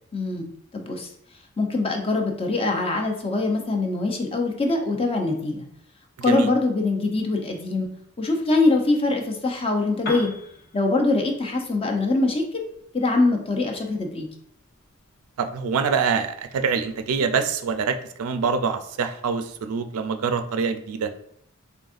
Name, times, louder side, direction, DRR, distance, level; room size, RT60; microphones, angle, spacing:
voice 1, 0.1-0.5 0.7-1.1 1.6-5.7 6.2-7.9 8.2-10.3 10.7-12.6 12.9-14.3, left 2 dB, 25° left, 3 dB, 0.5 m, -23 dB
voice 2, 6.2-6.5 15.4-21.1, right 5 dB, 85° right, 8 dB, 0.4 m, -25 dB
Piano, 9.9-17.7, left 1 dB, 50° left, 0.9 m, -43 dB
3.9 x 3.5 x 2.4 m, 0.71 s
head